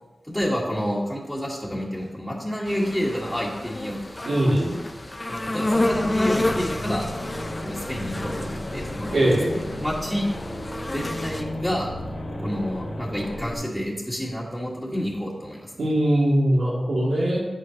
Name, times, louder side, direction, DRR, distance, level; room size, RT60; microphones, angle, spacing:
voice 1, 0.3-4.3 5.3-7.1 7.6-9.1 9.5-10.3 10.9-11.9 12.4-15.7, equal, 5° left, -6 dB, 1.9 m, -29 dB
sound 1, 2.7-11.4, left 1 dB, 25° left, 0.7 m, -30 dB
voice 2, 4.3-4.7 9.1-9.5 15.8-17.4, right 1 dB, 90° right, -5 dB, 2.6 m, -21 dB
sound 2, 5.7-13.5, left 1 dB, 70° left, 2.4 m, -34 dB
10.0 x 8.5 x 3.0 m, 1.1 s
wide cardioid pair, 75°, 0 cm